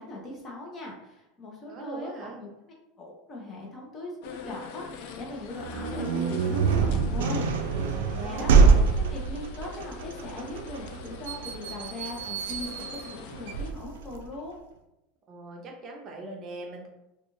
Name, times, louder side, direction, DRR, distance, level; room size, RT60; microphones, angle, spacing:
voice 1, 0.0-2.5 3.0-7.5 8.0-8.5 9.0-14.6, left 1 dB, 30° left, -1 dB, 0.8 m, -40 dB
voice 2, 1.7-2.4 8.1-8.9 15.3-16.9, right 2 dB, 40° right, 1 dB, 0.6 m, -41 dB
sound 1, 4.2-13.7, left 6 dB, 70° left, 0.3 m, -44 dB
sound 2, 5.6-14.3, right 5 dB, 90° right, 0.3 m, -25 dB
2.4 x 2.3 x 3.0 m, 0.89 s
supercardioid pair, 125°, 0 cm